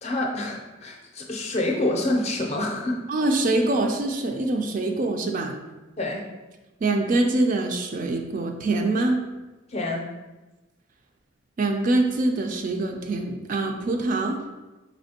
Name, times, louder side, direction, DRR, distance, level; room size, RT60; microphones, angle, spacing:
voice 1, 0.0-3.0 6.0-6.2 9.7-10.1, left 1 dB, 35° left, 1 dB, 0.5 m, -27 dB
voice 2, 3.1-5.5 6.8-9.2 11.6-14.4, right 2 dB, 40° right, 4 dB, 0.3 m, -24 dB
4.2 x 3.2 x 2.7 m, 1.1 s
head